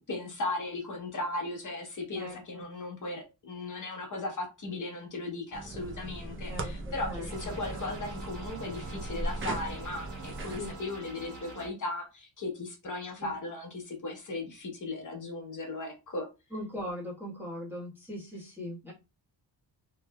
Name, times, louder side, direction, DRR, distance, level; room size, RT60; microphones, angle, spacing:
voice 1, 0.0-16.3, left 2 dB, 40° left, 1.0 m, -37 dB
voice 2, 2.2-2.6 6.5-7.6 10.5-10.8 13.2-13.3 16.5-18.9, equal, 5° right, 1.2 m, -40 dB
sound 1, 5.5-10.7, right 2 dB, 30° right, 0.4 m, -38 dB
sound 2, 7.3-11.7, right 3 dB, 65° right, 1.3 m, -45 dB
3.1 x 2.9 x 2.2 m
wide cardioid pair, 170°, 46 cm